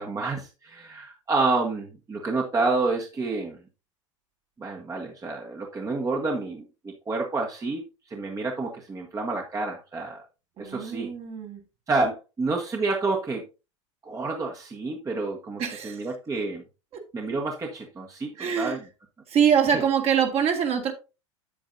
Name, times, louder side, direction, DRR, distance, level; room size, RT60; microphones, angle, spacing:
voice 1, 0.0-3.6 4.6-7.8 8.1-10.2 10.6-11.1 11.9-13.4 14.0-16.6 17.1-18.3 18.6-18.8 19.7-19.8, right 3 dB, 20° right, 1.4 m, -29 dB
voice 2, 10.6-11.6 15.6-16.0 18.4-18.8 19.3-20.9, right 7 dB, 40° right, 2.0 m, -24 dB
8.8 x 8.5 x 2.7 m
hypercardioid pair, 80°, 16 cm